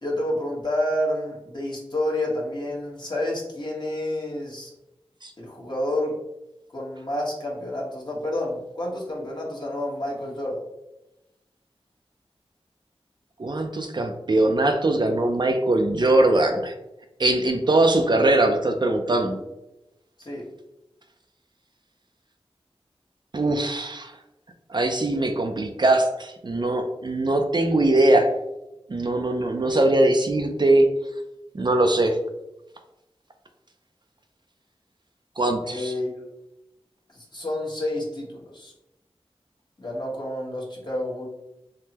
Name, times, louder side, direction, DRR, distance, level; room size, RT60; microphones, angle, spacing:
voice 1, 0.0-4.7 5.4-6.1 6.7-10.6 20.2-20.5 35.6-36.1 37.1-38.7 39.8-41.3, left 1 dB, 45° left, -4 dB, 1.1 m, -29 dB
voice 2, 13.4-16.7 17.2-19.4 23.3-24.1 24.7-28.3 28.9-30.9 31.5-32.2 35.4-35.9, right 2 dB, 45° right, 5 dB, 0.4 m, -21 dB
3.5 x 2.1 x 2.8 m, 0.92 s
wide cardioid pair, 50°, 11 cm